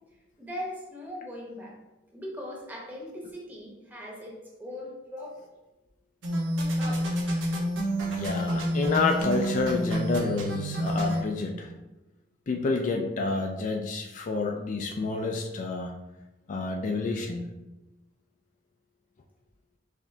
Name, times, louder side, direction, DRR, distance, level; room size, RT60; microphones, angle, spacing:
voice 1, 0.4-1.8 2.1-5.5 6.8-7.1, left 1 dB, 10° right, -3 dB, 0.9 m, -39 dB
sound 1, 6.2-11.2, equal, 85° right, 1.0 m, -28 dB
voice 2, 8.1-11.7 12.5-15.9 16.5-17.5, left 3 dB, 40° left, 2 dB, 0.4 m, -29 dB
4.8 x 3.3 x 2.7 m, 1.0 s
head